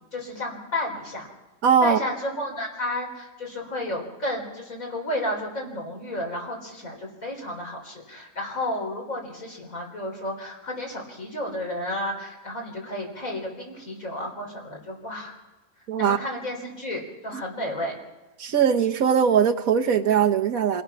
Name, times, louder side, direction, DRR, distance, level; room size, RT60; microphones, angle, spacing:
voice 1, 0.1-1.2 1.8-15.3 16.0-18.0, left 1 dB, 65° left, -1 dB, 4.8 m, -32 dB
voice 2, 1.6-2.0 15.9-16.2 18.4-20.8, right 7 dB, 70° right, 5 dB, 1.4 m, -20 dB
27.5 x 17.0 x 5.9 m, 1.1 s
omnidirectional pair, 1.5 m